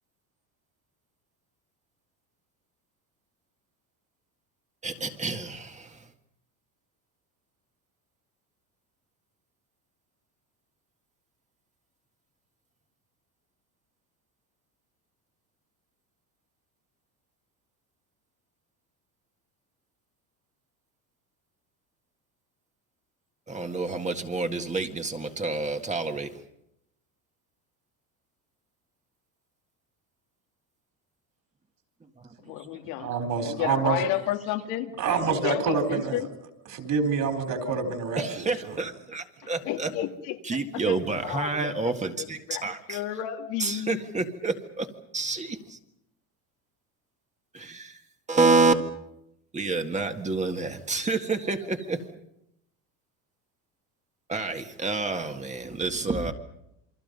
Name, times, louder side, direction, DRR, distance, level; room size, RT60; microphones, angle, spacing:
voice 1, 4.8-6.0 23.5-26.3 32.2-32.3 38.2-39.9 40.5-43.0 43.6-44.9 45.1-45.8 47.5-48.0 48.3-48.8 49.5-52.0 54.3-56.3, right 3 dB, 15° right, 1.8 m, -28 dB
voice 2, 32.4-36.3 39.6-41.5 41.8-44.1, left 13 dB, 85° left, 2.4 m, -32 dB
voice 3, 33.0-34.1 35.0-36.3 36.7-38.8, right 5 dB, 45° right, 4.4 m, -27 dB
28.5 x 24.0 x 5.4 m
cardioid pair, 140°, 45 cm